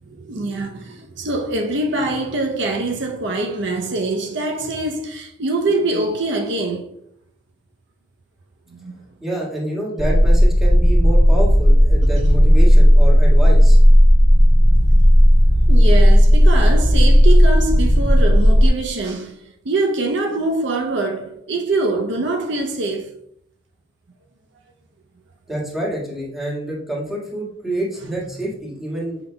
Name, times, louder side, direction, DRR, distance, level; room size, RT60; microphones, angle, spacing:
voice 1, 0.0-6.9 8.7-8.9 15.7-23.2 28.0-28.2, right 2 dB, 65° right, 0.7 m, -24 dB
voice 2, 9.2-13.8 25.5-29.2, right 1 dB, ahead, 1.8 m, -27 dB
sound 1, 10.0-18.7, equal, 85° right, 2.2 m, -12 dB
7.2 x 5.8 x 2.2 m
head